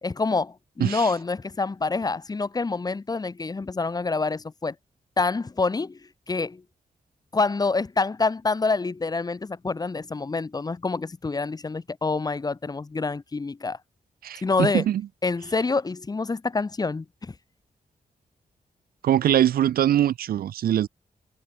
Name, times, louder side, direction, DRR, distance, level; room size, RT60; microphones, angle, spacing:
voice 1, 0.0-4.7 5.2-6.0 6.3-6.6 7.3-13.8 14.4-14.8 15.2-17.3, left 3 dB, 25° left, 2.6 m, -27 dB
voice 2, 14.2-15.0 19.0-20.9, right 11 dB, 85° right, 0.4 m, -22 dB
wide cardioid pair, 175°, 15 cm